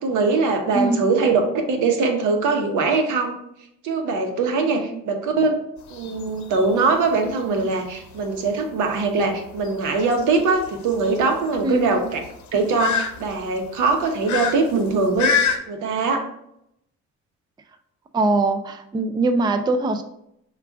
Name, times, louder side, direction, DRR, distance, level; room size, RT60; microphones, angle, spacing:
voice 1, 0.0-1.4 1.7-3.4 3.8-5.6 5.9-12.2 12.5-15.3 15.7-16.2, right 4 dB, 80° right, 4 dB, 0.9 m, -22 dB
sound 1, 5.8-15.6, left 6 dB, 70° left, 0.8 m, -29 dB
voice 2, 18.1-20.0, right 2 dB, 15° right, 8 dB, 0.3 m, -22 dB
5.8 x 2.4 x 3.5 m, 0.77 s
cardioid pair, 90°, 30 cm